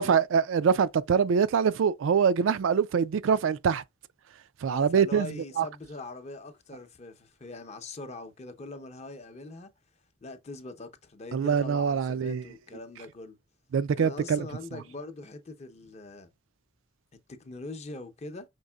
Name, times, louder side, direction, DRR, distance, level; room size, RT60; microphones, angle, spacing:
voice 1, 0.0-3.8 4.6-5.7 11.3-12.4 13.7-14.4, right 6 dB, 75° right, 0.3 m, -24 dB
voice 2, 4.6-9.7 10.2-13.4 13.9-16.3 17.3-18.4, left 2 dB, 35° left, 0.6 m, -42 dB
5.2 x 3.6 x 2.3 m
head